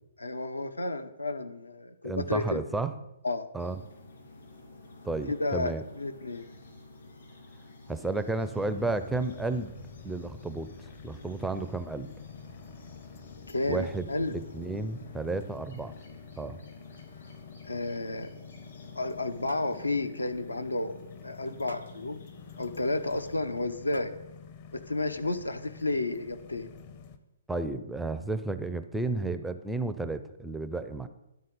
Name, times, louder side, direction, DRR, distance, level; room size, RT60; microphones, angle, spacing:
voice 1, 0.2-2.6 3.2-3.5 5.3-6.5 13.5-14.3 17.6-18.3 18.9-20.9 21.2-22.2 22.6-24.1 24.7-26.7, left 2 dB, 80° left, 9 dB, 0.6 m, -31 dB
voice 2, 2.0-2.9 3.5-3.8 5.0-5.8 7.9-9.7 10.0-10.7 11.0-12.1 13.7-15.9 16.4-16.6 27.5-31.1, right 3 dB, 5° right, 10 dB, 0.4 m, -32 dB
sound 1, 3.6-23.4, left 3 dB, 60° left, 2.5 m, -50 dB
sound 2, 8.4-27.2, left 6 dB, 40° left, 0.7 m, -49 dB
sound 3, 18.7-19.2 19.5-19.8 20.2-20.4 20.8-20.9 21.7-22.0 23.2-23.3 23.9-24.4, right 2 dB, 80° right, 0.4 m, -46 dB
11.5 x 3.8 x 5.3 m, 0.90 s
figure-of-eight pair, 125°, 0 cm